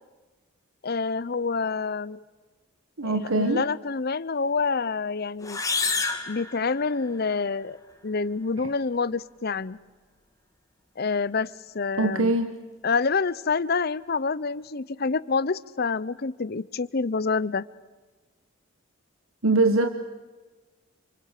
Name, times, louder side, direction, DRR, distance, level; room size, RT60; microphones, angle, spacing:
voice 1, 0.8-2.2 3.0-5.6 6.3-7.8 8.0-9.8 11.0-12.4 12.8-17.7, left 4 dB, 50° left, 18 dB, 0.7 m, -27 dB
voice 2, 3.0-3.6 12.0-12.5 19.4-19.9, right 2 dB, 90° right, 9 dB, 1.4 m, -22 dB
sound 1, 5.4-7.3, left 4 dB, 15° left, 2.2 m, -29 dB
28.5 x 25.5 x 6.6 m, 1.3 s
head